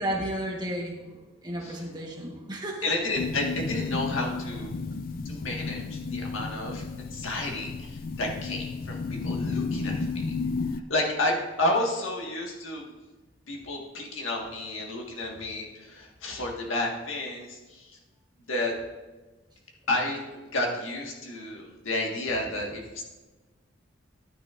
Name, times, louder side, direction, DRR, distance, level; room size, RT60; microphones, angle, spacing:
voice 1, 0.0-2.9, right 1 dB, 20° right, 0 dB, 1.2 m, -33 dB
voice 2, 2.8-4.9 5.2-10.2 10.7-12.8 13.5-18.0 18.5-18.7 19.9-23.0, left 1 dB, 85° left, 0 dB, 1.7 m, -31 dB
sound 1, 3.1-10.8, left 4 dB, 45° left, 0.3 m, -32 dB
12.0 x 9.7 x 2.5 m, 1.2 s
head